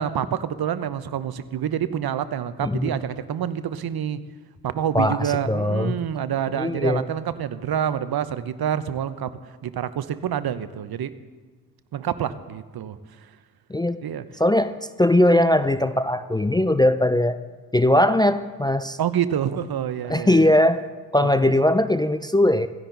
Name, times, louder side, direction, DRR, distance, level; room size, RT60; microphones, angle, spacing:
voice 1, 0.0-4.2 4.6-9.3 9.6-11.1 11.9-13.0 14.0-14.2 19.0-20.5 21.2-21.5, right 9 dB, 50° right, 13 dB, 1.0 m, -27 dB
voice 2, 2.6-3.0 4.9-6.0 6.5-7.1 13.7-14.0 14.4-17.4 17.7-19.0 20.1-20.9 21.1-22.7, left 1 dB, 10° left, 11 dB, 0.6 m, -20 dB
16.5 x 15.5 x 4.1 m, 1.4 s
hypercardioid pair, 40°, 48 cm